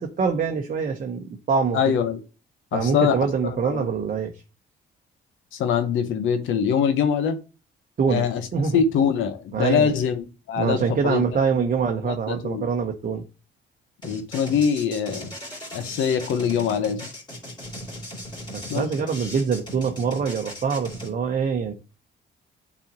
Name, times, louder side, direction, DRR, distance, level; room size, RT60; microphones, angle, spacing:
voice 1, 0.0-2.0 2.7-4.3 8.0-8.2 8.5-8.8 9.5-9.9 10.6-13.2 18.5-21.7, right 5 dB, 45° right, 0.9 m, -24 dB
voice 2, 1.7-2.2 2.7-3.2 3.5-3.9 5.5-7.4 8.1-8.5 8.7-11.2 11.5-11.6 12.0-12.7 14.0-15.3 15.7-17.1 18.7-18.9, left 7 dB, 85° left, 1.0 m, -23 dB
sound 1, 14.0-21.1, equal, 20° left, 3.2 m, -38 dB
8.9 x 4.2 x 2.9 m
cardioid pair, 90°, 20 cm